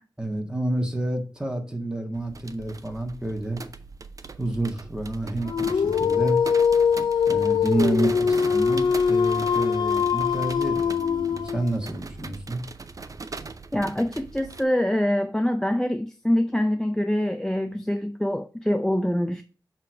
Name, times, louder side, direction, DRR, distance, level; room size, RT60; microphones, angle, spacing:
voice 1, 0.2-3.6 4.4-6.4 7.3-12.6, right 1 dB, 10° right, 1.5 m, -29 dB
sound 1, 2.1-14.6, right 4 dB, 50° right, 0.5 m, -40 dB
Dog, 5.4-11.8, left 6 dB, 90° left, 0.4 m, -22 dB
voice 2, 13.7-19.4, left 1 dB, 5° left, 0.4 m, -25 dB
6.7 x 3.3 x 4.6 m
wide cardioid pair, 75°, 8 cm